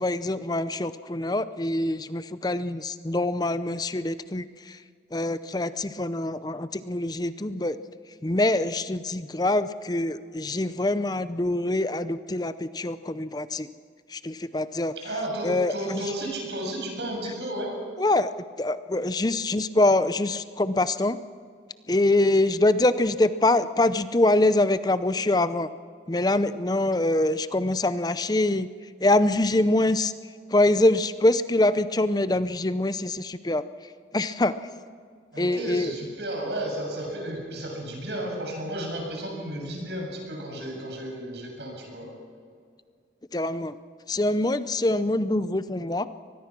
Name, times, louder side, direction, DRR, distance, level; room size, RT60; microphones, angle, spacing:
voice 1, 0.0-4.8 5.1-7.8 8.2-13.7 14.1-14.9 15.4-16.0 18.0-18.3 18.6-21.2 21.9-25.7 26.1-28.7 29.0-30.1 30.5-33.6 34.1-34.5 35.4-35.9 43.3-43.8 44.1-46.1, left 2 dB, 20° left, 13 dB, 0.6 m, -24 dB
voice 2, 15.0-17.7 35.3-42.1, right 1 dB, 75° right, 0 dB, 7.3 m, -33 dB
24.0 x 20.0 x 6.1 m, 2.1 s
head